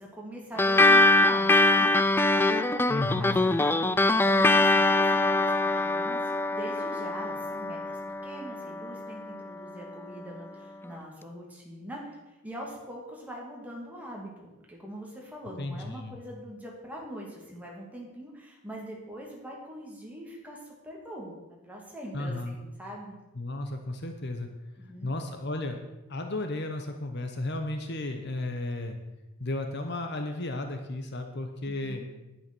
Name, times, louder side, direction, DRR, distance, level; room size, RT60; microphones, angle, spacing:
voice 1, 0.0-21.3 21.6-23.1 24.8-25.1 31.7-32.1, equal, 5° right, -2 dB, 2.6 m, -43 dB
sound 1, 0.6-9.4, left 2 dB, 10° left, 0.3 m, -23 dB
voice 2, 2.9-3.4 15.6-16.1 22.1-22.5 23.3-24.5 25.0-25.8 26.1-29.0 29.4-32.0, left 2 dB, 50° left, 5 dB, 1.1 m, -33 dB
10.5 x 9.6 x 6.2 m, 1.0 s
head